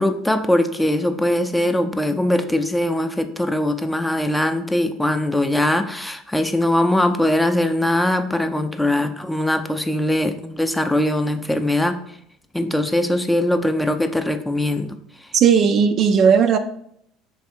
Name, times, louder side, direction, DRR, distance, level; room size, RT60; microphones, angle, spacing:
voice 1, 0.0-12.0 12.5-14.9, left 1 dB, 5° left, 0.5 m, -21 dB
voice 2, 15.3-16.6, right 7 dB, 50° right, 0.4 m, -15 dB
3.6 x 3.2 x 4.4 m
hypercardioid pair, 70°, 0 cm